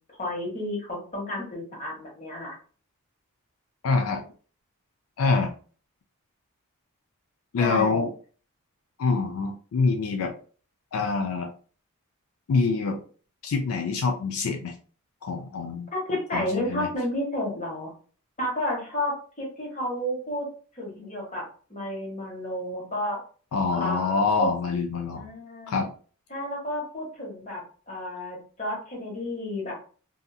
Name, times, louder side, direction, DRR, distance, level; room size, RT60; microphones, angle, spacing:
voice 1, 0.2-2.6 7.6-8.1 15.9-17.9 18.4-20.5 20.7-21.4 21.7-23.2 23.7-24.5 25.1-25.8 26.3-29.7, left 1 dB, 35° left, -2 dB, 1.1 m, -31 dB
voice 2, 3.8-4.2 5.2-5.5 7.5-8.1 9.0-10.3 10.9-11.5 12.5-13.0 13.4-14.7 15.2-15.9 16.3-16.9 23.5-25.3 25.7-25.9, left 4 dB, 80° left, 5 dB, 0.4 m, -25 dB
2.7 x 2.6 x 2.3 m, 0.40 s
head